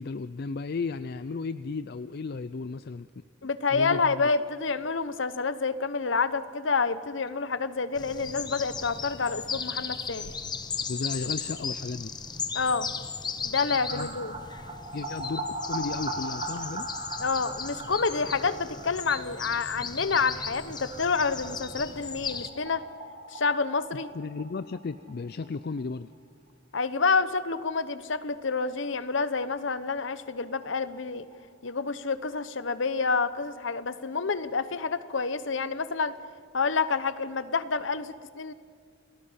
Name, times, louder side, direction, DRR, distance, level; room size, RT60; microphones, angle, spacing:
voice 1, 0.0-3.1 3.7-4.2 10.9-12.1 13.9-14.1 14.9-16.9 24.1-26.1, left 4 dB, 55° left, 13 dB, 0.4 m, -34 dB
voice 2, 3.4-10.3 12.5-12.9 13.4-14.3 17.2-22.8 23.3-24.1 26.7-31.3 31.6-36.2 36.5-38.5, left 4 dB, 70° left, 14 dB, 1.0 m, -28 dB
sound 1, 7.9-22.5, left 5 dB, 20° left, 1.0 m, -36 dB
sound 2, 13.9-25.5 25.8-25.9 26.1-26.2 29.2-29.3 29.6-29.7 29.9-31.7 32.0-32.1, right 2 dB, 25° right, 1.4 m, -40 dB
29.0 x 19.0 x 5.7 m, 2.1 s
head